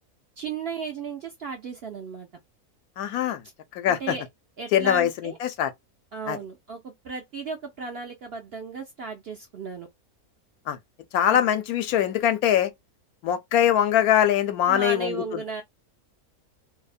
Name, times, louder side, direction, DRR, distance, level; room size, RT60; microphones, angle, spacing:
voice 1, 0.4-2.3 3.9-4.2 4.6-5.4 6.1-9.9 11.3-11.4 14.6-15.6, right 4 dB, 65° right, 0.6 m, -35 dB
voice 2, 3.0-3.4 3.8-4.1 4.7-5.7 6.3-6.4 10.7-10.8 11.1-12.7 13.2-15.4, left 10 dB, 80° left, 1.0 m, -22 dB
2.7 x 2.1 x 2.3 m
omnidirectional pair, 1.6 m